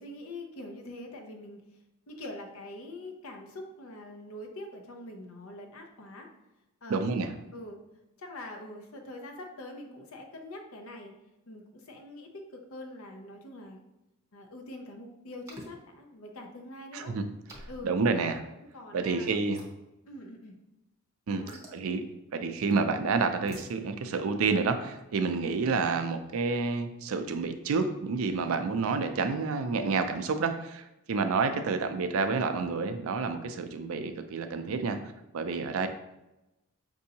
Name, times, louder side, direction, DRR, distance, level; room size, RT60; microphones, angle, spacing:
voice 1, 0.0-1.6 2.1-6.3 6.8-7.0 7.5-7.8 8.2-11.1 11.5-13.8 14.3-17.1 17.7-17.9 18.7-19.4 20.1-20.5 21.3-21.6, left 1 dB, 70° left, 3 dB, 0.7 m, -44 dB
voice 2, 6.9-7.3 16.9-17.2 17.8-18.4 18.9-19.6 21.3-22.0 22.3-35.0 35.3-35.9, right 4 dB, 70° right, 8 dB, 0.4 m, -29 dB
sound 1, 15.5-15.7 17.5-17.9 19.5-19.7 21.5-21.8 23.5-23.7, equal, 15° right, 0.7 m, -46 dB
5.4 x 2.7 x 2.7 m, 0.95 s
head